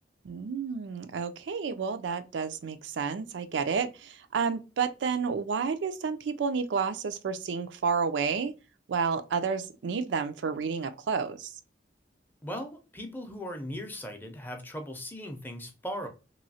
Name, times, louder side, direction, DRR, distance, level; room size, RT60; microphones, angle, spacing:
voice 1, 0.2-8.5 8.9-11.5, right 5 dB, 85° right, 0.4 m, -30 dB
voice 2, 12.4-16.1, equal, 10° left, 0.5 m, -38 dB
3.0 x 2.6 x 2.7 m
head